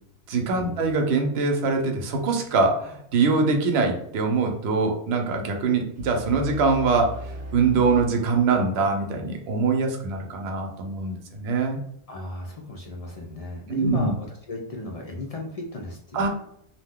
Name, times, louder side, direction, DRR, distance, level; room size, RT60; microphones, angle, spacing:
voice 1, 0.3-7.2 7.5-11.8 13.7-14.1 16.1-16.3, right 4 dB, 70° right, 3 dB, 0.8 m, -23 dB
sound 1, 6.0-9.0, right 1 dB, 20° right, 0.4 m, -38 dB
voice 2, 12.1-16.3, left 2 dB, 60° left, 0 dB, 0.4 m, -35 dB
2.5 x 2.1 x 3.5 m, 0.72 s
omnidirectional pair, 1.2 m